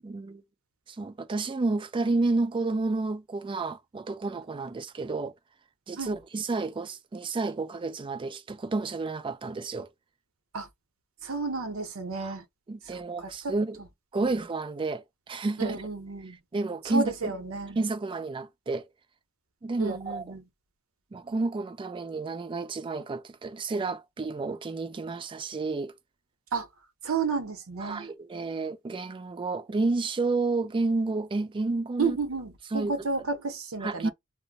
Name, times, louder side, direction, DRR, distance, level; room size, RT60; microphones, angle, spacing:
voice 1, 0.0-0.4 0.9-5.3 5.9-9.9 12.7-13.8 14.1-15.8 16.5-17.3 17.8-18.8 19.6-20.2 21.1-25.9 27.8-32.2 32.7-32.9 33.8-34.1, right 3 dB, 25° right, 0.3 m, -30 dB
voice 2, 11.2-12.4 12.8-13.9 15.6-16.4 16.8-17.8 19.8-20.5 26.5-26.7 27.0-28.1 32.0-34.1, right 4 dB, 70° right, 0.8 m, -32 dB
2.5 x 2.0 x 3.8 m
head